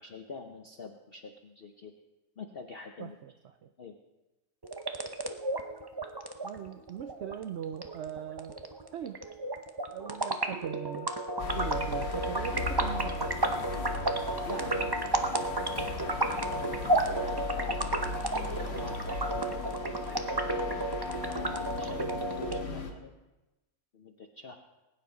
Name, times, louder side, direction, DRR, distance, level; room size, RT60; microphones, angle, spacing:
voice 1, 0.0-1.9 2.4-3.2 3.8-4.0 14.4-15.4 16.0-18.0 18.3-20.3 21.3-23.1 23.9-24.6, left 4 dB, 50° left, 4 dB, 0.8 m, -46 dB
voice 2, 3.0-3.7 6.4-8.6 8.9-9.2 9.5-11.1 11.4-13.7, right 9 dB, 90° right, 9 dB, 0.6 m, -41 dB
sound 1, 4.6-22.6, right 1 dB, 35° right, 0.4 m, -32 dB
sound 2, 11.4-22.9, left 4 dB, 85° left, 2.1 m, -38 dB
20.5 x 9.7 x 4.0 m, 1.1 s
omnidirectional pair, 1.7 m